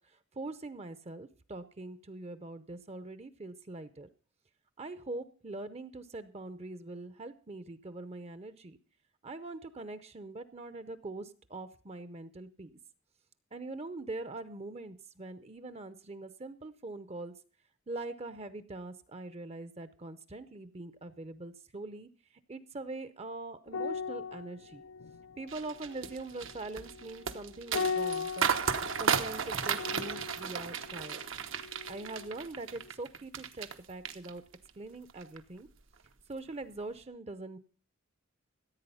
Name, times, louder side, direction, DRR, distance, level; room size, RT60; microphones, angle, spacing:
voice 1, 0.0-4.1 4.8-8.8 9.2-12.8 13.5-17.3 17.9-22.1 22.5-24.8 25.4-28.5 29.0-31.2 31.9-34.4 34.8-35.7 36.3-37.6, right 2 dB, 30° right, 13 dB, 0.7 m, -43 dB
sound 1, 23.7-32.4 32.7-32.9, left 5 dB, 80° left, 0.6 m, -39 dB
sound 2, 25.5-33.7 34.0-34.7 35.1-35.4, right 7 dB, 75° right, 1.0 m, -34 dB
15.0 x 8.6 x 5.5 m, 0.40 s
head